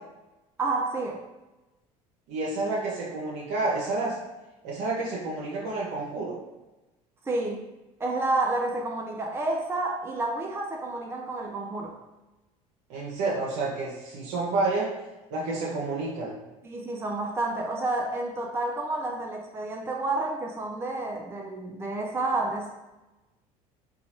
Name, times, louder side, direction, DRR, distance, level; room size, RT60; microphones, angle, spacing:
voice 1, 0.6-1.2 7.3-7.6 8.0-12.0 16.6-22.7, right 2 dB, 15° right, 1 dB, 0.5 m, -30 dB
voice 2, 2.3-4.2 4.6-6.4 12.9-15.0 15.3-16.4, right 3 dB, 70° right, -5 dB, 0.7 m, -29 dB
3.8 x 2.3 x 2.9 m, 1.1 s
hypercardioid pair, 70°, 18 cm